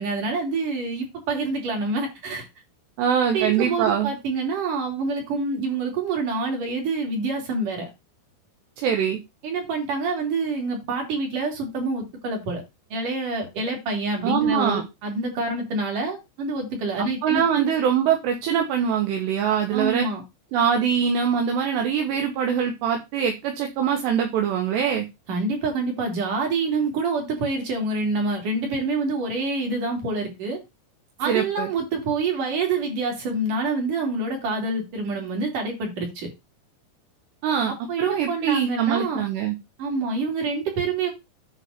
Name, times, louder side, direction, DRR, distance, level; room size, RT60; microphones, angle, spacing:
voice 1, 0.0-2.5 3.3-7.9 9.4-12.6 12.9-17.7 19.7-20.2 25.3-30.6 31.2-36.3 37.7-39.2 39.8-41.1, right 3 dB, 45° right, 4.8 m, -27 dB
voice 2, 3.0-4.1 8.8-9.2 14.2-14.8 17.2-20.1 20.5-25.0 31.3-31.7 37.4-37.7 38.0-39.6, right 8 dB, 75° right, 3.3 m, -23 dB
10.0 x 4.2 x 6.8 m
omnidirectional pair, 5.2 m